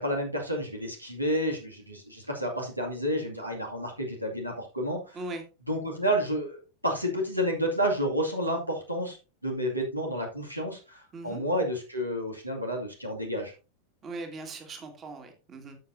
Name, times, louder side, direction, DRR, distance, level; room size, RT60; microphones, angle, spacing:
voice 1, 0.0-5.2 5.7-9.2 9.4-13.5, equal, 90° right, 1 dB, 2.2 m, -30 dB
voice 2, 11.1-11.4 14.0-15.8, right 2 dB, 25° right, 5 dB, 2.0 m, -39 dB
12.5 x 6.9 x 2.7 m, 0.32 s
figure-of-eight pair, 90°, 0 cm